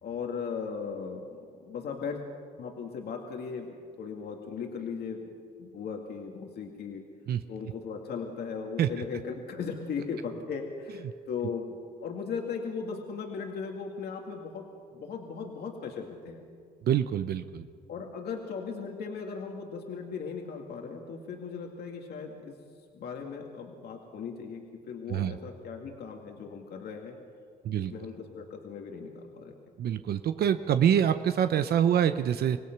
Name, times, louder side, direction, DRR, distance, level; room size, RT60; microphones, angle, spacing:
voice 1, 0.0-2.3 2.6-7.0 7.5-14.7 14.9-16.4 17.9-22.5 22.9-27.2 27.7-29.5, left 5 dB, 70° left, 2 dB, 2.2 m, -37 dB
voice 2, 16.8-17.7 25.1-25.4 27.6-27.9 29.8-32.6, right 9 dB, 65° right, 10 dB, 0.8 m, -25 dB
26.0 x 18.0 x 6.0 m, 2.1 s
cardioid pair, 85°, 17 cm